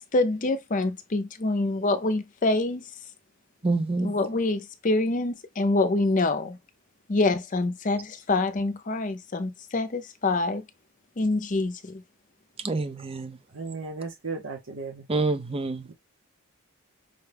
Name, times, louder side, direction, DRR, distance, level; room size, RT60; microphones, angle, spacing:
voice 1, 0.0-2.9 4.0-6.6 7.1-10.6 11.2-12.0, left 2 dB, 35° left, 0.6 m, -26 dB
voice 2, 3.6-4.2 12.6-13.4 15.1-15.9, right 3 dB, 25° right, 0.5 m, -27 dB
voice 3, 13.5-15.0, right 4 dB, 60° right, 0.9 m, -35 dB
5.4 x 2.3 x 3.3 m
head